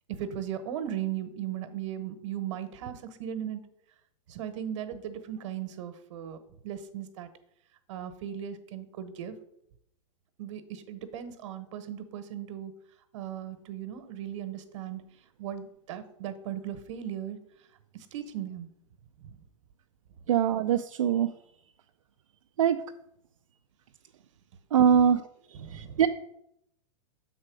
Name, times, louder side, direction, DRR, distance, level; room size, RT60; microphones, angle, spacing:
voice 1, 0.1-3.6 4.3-7.3 7.9-9.3 10.4-12.7 13.1-15.1 15.4-17.4 17.9-18.7 19.2-19.4 24.9-25.1 25.5-26.1, right 10 dB, 65° right, 10 dB, 1.1 m, -37 dB
voice 2, 20.3-21.3 22.6-22.8 24.7-25.2 25.7-26.1, right 8 dB, 85° right, 5 dB, 0.5 m, -22 dB
6.4 x 4.2 x 6.2 m, 0.76 s
hypercardioid pair, 120°, 17 cm